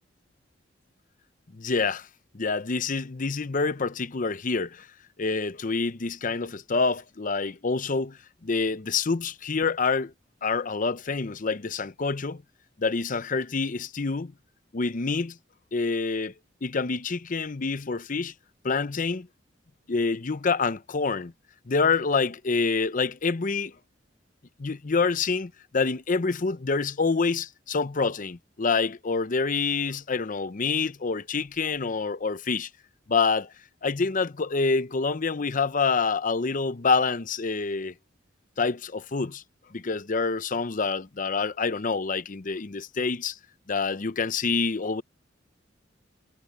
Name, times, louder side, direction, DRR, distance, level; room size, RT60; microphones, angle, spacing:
voice 1, 1.5-2.1 2.3-4.9 5.2-10.1 10.4-12.4 12.8-14.3 14.7-15.4 15.7-16.3 16.6-18.3 18.6-19.3 19.9-21.3 21.7-23.7 24.6-32.7 33.1-33.5 33.8-37.9 38.6-39.4 39.7-43.4 43.7-45.0, left 4 dB, 45° left, 0.7 m, -27 dB
head